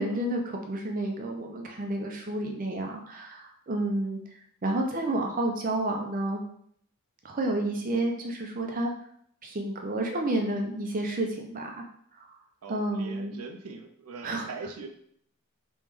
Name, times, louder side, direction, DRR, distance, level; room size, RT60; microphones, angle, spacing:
voice 1, 0.0-4.2 4.6-6.4 7.2-8.9 9.4-11.8 12.7-13.3 14.2-14.5, right 1 dB, 40° right, 2 dB, 0.5 m, -30 dB
voice 2, 12.6-14.9, right 4 dB, 85° right, 5 dB, 0.5 m, -42 dB
3.2 x 3.1 x 3.4 m, 0.67 s
head